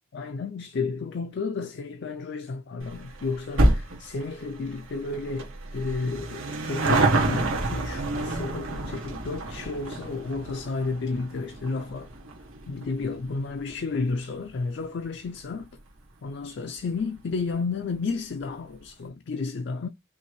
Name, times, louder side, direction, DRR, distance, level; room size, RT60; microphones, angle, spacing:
voice 1, 0.1-12.1 12.7-15.7 16.2-19.9, left 4 dB, 55° left, 0.4 m, -32 dB
sound 1, 2.8-15.6 15.9-16.0 16.8-16.9 17.1-17.2 17.5-17.6, right 2 dB, 75° right, 1.5 m, -29 dB
5.5 x 2.5 x 3.0 m
head